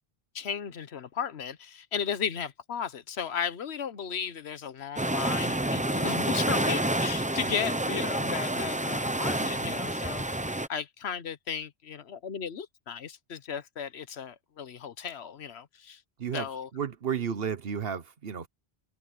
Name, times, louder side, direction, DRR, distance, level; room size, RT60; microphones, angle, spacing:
voice 1, 0.3-10.2 10.7-16.0 16.3-16.7, left 7 dB, 90° left, 1.2 m, -35 dB
sound 1, 5.0-10.7, right 1 dB, 10° right, 0.7 m, -29 dB
voice 2, 16.2-18.5, right 7 dB, 70° right, 1.2 m, -33 dB
omnidirectional pair, 1.1 m